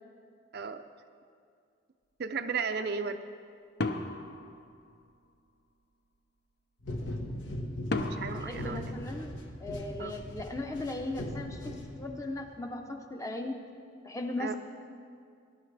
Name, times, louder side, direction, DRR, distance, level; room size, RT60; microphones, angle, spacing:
voice 1, 2.2-3.2 8.0-8.8 10.0-10.1 14.4-14.5, right 5 dB, 55° right, 8 dB, 0.5 m, -34 dB
sound 1, 3.8-5.3 7.9-9.7, left 2 dB, 55° left, 0.7 m, -36 dB
sound 2, 6.8-12.4, left 1 dB, 70° left, 1.3 m, -39 dB
voice 2, 8.3-9.3 9.6-13.6 14.0-14.6, left 2 dB, 15° left, 4 dB, 0.8 m, -37 dB
20.0 x 11.0 x 3.3 m, 2.3 s
head